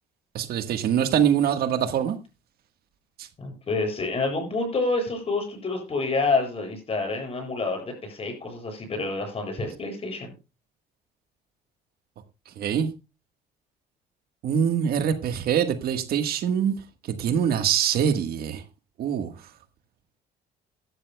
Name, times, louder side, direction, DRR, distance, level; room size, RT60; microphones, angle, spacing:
voice 1, 0.3-2.2 3.2-3.3 12.6-12.9 14.4-16.7 17.2-18.6 19.0-19.3, right 8 dB, 65° right, 1.5 m, -24 dB
voice 2, 3.4-10.3, left 3 dB, 35° left, 7.7 m, -28 dB
17.0 x 12.5 x 2.3 m
cardioid pair, 110°, 17 cm